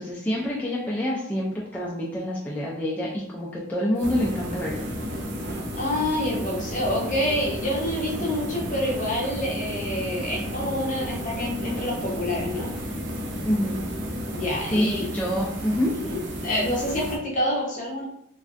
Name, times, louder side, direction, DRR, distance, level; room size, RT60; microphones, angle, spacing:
voice 1, 0.0-1.5 1.7-4.8 13.4-13.8 14.7-15.9, equal, 10° left, -5 dB, 0.3 m, -26 dB
sound 1, 4.0-17.2, right 1 dB, 65° right, 0.5 m, -34 dB
sound 2, 4.1-14.4, left 2 dB, 40° right, 0.8 m, -37 dB
voice 2, 5.7-12.7 14.2-15.1 16.0-18.0, left 1 dB, 45° left, -2 dB, 0.8 m, -27 dB
3.2 x 2.3 x 2.5 m, 0.75 s
head